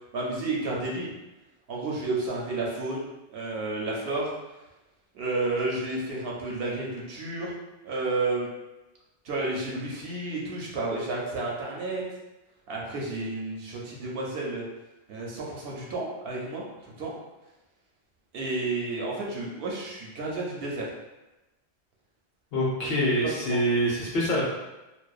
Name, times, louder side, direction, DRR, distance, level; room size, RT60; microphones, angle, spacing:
voice 1, 0.1-1.1 1.7-3.0 3.3-4.3 5.1-7.5 7.8-8.5 9.2-12.0 12.7-14.7 15.1-16.6 17.0-17.1 18.3-20.9 23.4-23.6, right 2 dB, 65° right, -3 dB, 0.7 m, -31 dB
voice 2, 22.5-24.4, equal, 65° left, -5 dB, 0.9 m, -25 dB
2.6 x 2.0 x 2.3 m, 1.0 s
omnidirectional pair, 1.1 m